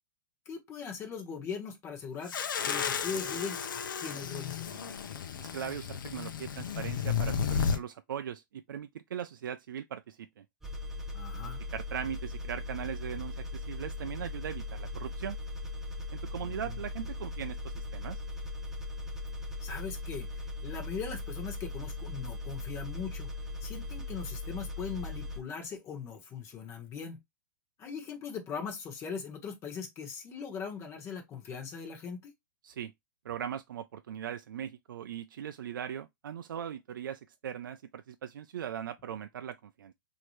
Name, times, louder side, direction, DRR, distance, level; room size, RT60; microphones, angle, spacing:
voice 1, 0.4-2.3 2.6-4.9 11.1-11.6 16.4-16.8 19.6-23.3 23.6-27.2 27.8-32.3, left 6 dB, 25° left, 1.2 m, -40 dB
sound 1, 2.3-7.8, left 6 dB, 85° left, 0.7 m, -33 dB
voice 2, 5.4-10.4 11.7-15.4 16.1-18.2 32.6-32.9 33.2-39.9, right 9 dB, 90° right, 0.4 m, -39 dB
sound 2, 10.6-25.4, left 2 dB, 5° right, 0.7 m, -39 dB
4.3 x 2.8 x 3.1 m
hypercardioid pair, 140°, 11 cm